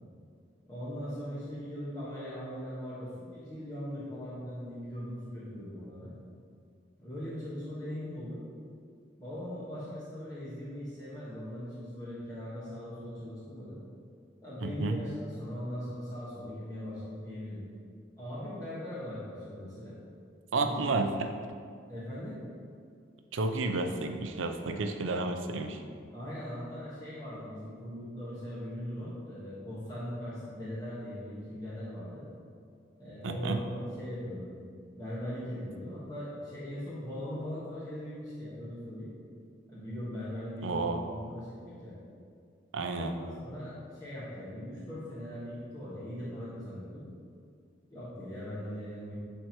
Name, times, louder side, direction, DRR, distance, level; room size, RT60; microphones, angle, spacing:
voice 1, 0.7-6.1 7.0-8.4 9.2-13.8 14.4-15.1 15.4-17.6 18.2-20.0 20.6-21.1 21.9-22.4 26.1-32.2 33.0-34.5 34.9-39.1 39.7-42.0 42.9-47.0 47.9-49.1, equal, 20° left, -11 dB, 1.4 m, -40 dB
voice 2, 14.6-15.0 20.5-21.1 23.3-25.8 33.2-33.6 40.6-41.0 42.7-43.1, right 3 dB, 90° right, 6 dB, 0.6 m, -31 dB
11.0 x 4.5 x 3.0 m, 2.2 s
head